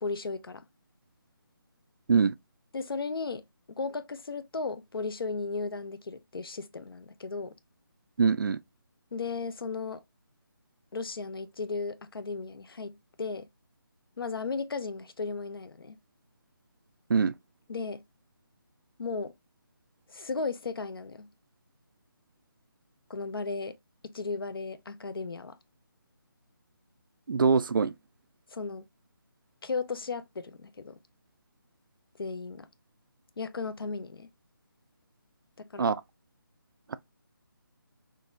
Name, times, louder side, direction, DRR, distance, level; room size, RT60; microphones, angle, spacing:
voice 1, 0.0-0.6 2.7-7.6 9.1-10.0 10.9-13.5 14.2-16.0 17.7-18.0 19.0-19.3 20.1-21.3 23.1-23.8 24.0-25.6 28.5-28.8 29.6-30.9 32.2-32.7 33.4-34.3 35.6-36.0, left 4 dB, 85° left, 0.5 m, -35 dB
voice 2, 8.2-8.6 17.1-17.4 27.3-27.9 35.8-36.0 36.9-37.0, right 5 dB, 65° right, 0.4 m, -23 dB
3.8 x 2.6 x 2.4 m
figure-of-eight pair, 165°, 12 cm